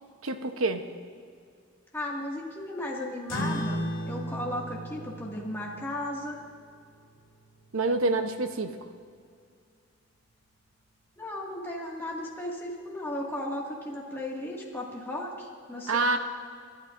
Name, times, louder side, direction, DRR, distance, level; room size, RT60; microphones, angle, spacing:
voice 1, 0.2-0.8 7.7-8.7 15.9-16.2, right 3 dB, 80° right, 7 dB, 0.9 m, -27 dB
voice 2, 1.9-6.4 11.2-16.2, left 1 dB, 10° left, -4 dB, 2.0 m, -35 dB
sound 1, 3.3-8.1, equal, 65° left, 3.7 m, -36 dB
29.0 x 12.0 x 2.6 m, 2.2 s
head